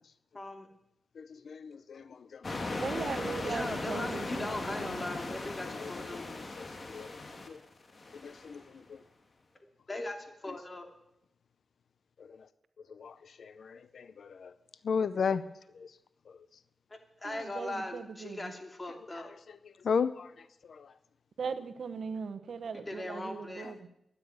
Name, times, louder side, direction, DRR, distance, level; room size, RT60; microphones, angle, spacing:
voice 1, 0.3-0.7 3.4-6.3 9.9-10.9 16.9-19.3 22.7-23.7, left 2 dB, 30° left, 2.7 m, -39 dB
voice 2, 1.2-2.6 5.7-7.2 7.5-7.6 8.1-9.0 12.2-12.5 12.9-14.5 14.8-15.4 15.7-15.9 16.3-16.4 19.1-19.3 19.6-20.9 23.6-23.7, left 6 dB, 75° left, 0.6 m, -36 dB
sound 1, 2.4-8.6, left 2 dB, 45° left, 2.5 m, -38 dB
voice 3, 2.8-5.1 17.2-18.5 21.4-23.8, right 5 dB, 75° right, 1.1 m, -39 dB
13.5 x 9.9 x 9.3 m
cardioid pair, 75°, 0 cm